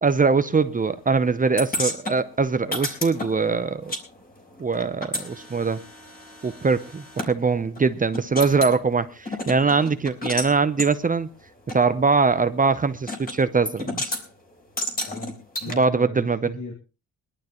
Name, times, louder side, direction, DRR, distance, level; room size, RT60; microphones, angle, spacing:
voice 1, 0.0-3.9 4.6-5.8 6.4-11.3 11.7-14.0 15.7-16.6, right 4 dB, 25° right, 0.7 m, -22 dB
sound 1, 1.6-4.0 4.3-7.3 7.8-7.9 8.1-8.8 9.3-10.5 10.8-10.9 11.7-11.8 13.1-13.4 13.7-14.2 14.8-15.7, left 1 dB, 25° left, 3.6 m, -31 dB
voice 2, 15.1-16.7, left 2 dB, 55° left, 2.7 m, -38 dB
21.5 x 12.0 x 3.1 m
cardioid pair, 120°, 35 cm